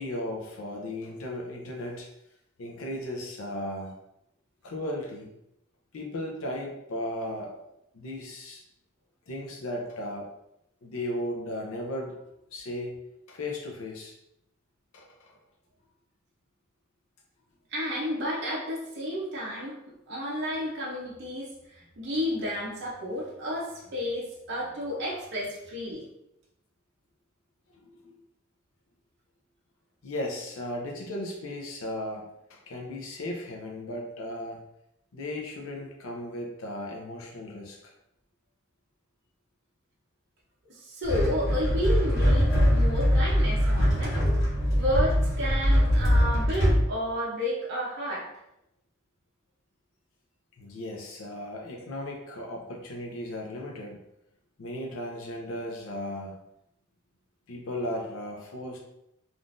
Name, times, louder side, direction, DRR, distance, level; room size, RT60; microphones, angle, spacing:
voice 1, 0.0-2.1 2.6-3.9 4.6-5.3 5.9-7.5 7.9-8.6 9.3-10.3 10.8-12.2 12.5-13.0 13.3-14.1 14.9-15.3 27.7-28.2 30.0-34.6 35.1-37.9 50.6-54.0 54.6-56.3 57.5-58.8, left 1 dB, 80° left, 0 dB, 0.5 m, -36 dB
voice 2, 17.7-19.8 20.1-26.0 40.7-44.2 44.7-48.3, equal, 55° right, -5 dB, 0.7 m, -31 dB
sound 1, 41.0-46.8, equal, 60° left, 1.1 m, -22 dB
3.7 x 2.4 x 2.5 m, 0.82 s
head